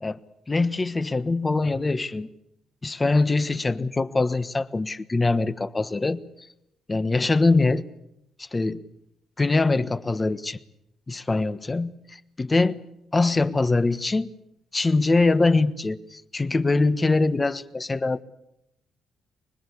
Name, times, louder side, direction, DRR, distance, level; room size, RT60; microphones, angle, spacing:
voice 1, 0.5-2.3 2.8-6.2 6.9-7.8 8.4-8.8 9.4-10.6 11.1-12.8 13.1-14.3 14.7-18.2, left 3 dB, 25° left, 1.2 m, -23 dB
25.0 x 21.0 x 8.4 m
cardioid pair, 90°, 0 cm